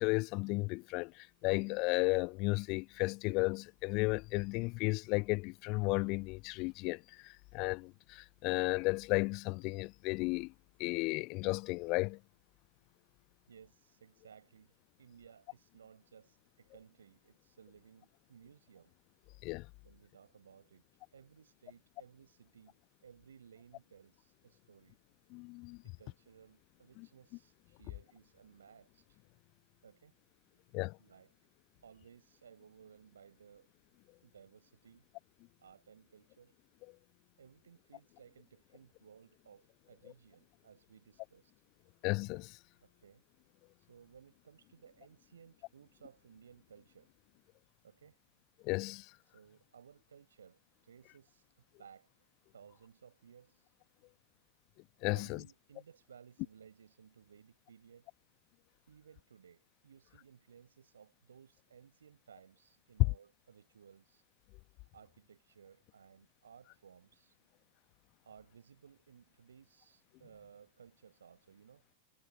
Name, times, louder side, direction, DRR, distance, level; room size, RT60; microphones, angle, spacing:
voice 1, 0.0-10.5 10.8-12.2 19.4-19.7 25.3-25.8 30.7-31.0 42.0-42.6 48.6-49.1 55.0-55.4, left 26 dB, 40° left, 0.9 m, -34 dB
voice 2, 13.5-18.9 19.8-20.8 21.1-25.0 25.8-29.2 29.8-30.1 31.0-31.3 31.8-33.7 34.2-35.1 35.6-36.5 37.4-41.5 42.8-43.2 43.8-47.1 47.8-48.2 49.2-52.3 52.5-53.7 55.1-58.1 58.9-64.2 64.9-67.4 68.2-71.8, right 7 dB, 70° right, 5.5 m, -60 dB
figure-of-eight pair, 90°, 0 cm